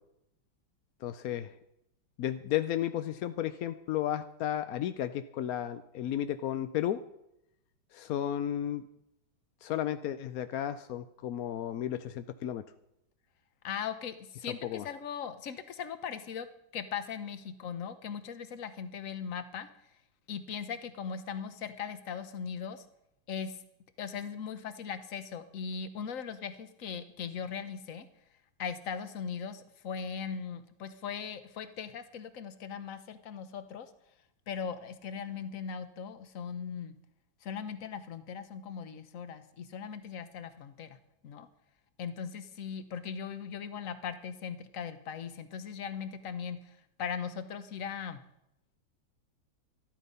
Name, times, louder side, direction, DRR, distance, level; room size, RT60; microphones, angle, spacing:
voice 1, 1.0-1.5 2.2-7.0 7.9-8.8 9.6-12.6 14.6-14.8, left 11 dB, 75° left, 10 dB, 0.8 m, -33 dB
voice 2, 13.6-16.5 16.7-19.7 20.3-22.8 23.3-23.6 24.0-28.1 28.6-33.9 34.5-37.0 37.4-41.0 41.2-41.5 42.0-48.2, left 7 dB, 50° left, 11 dB, 1.1 m, -39 dB
13.5 x 12.0 x 5.5 m, 0.82 s
omnidirectional pair, 2.2 m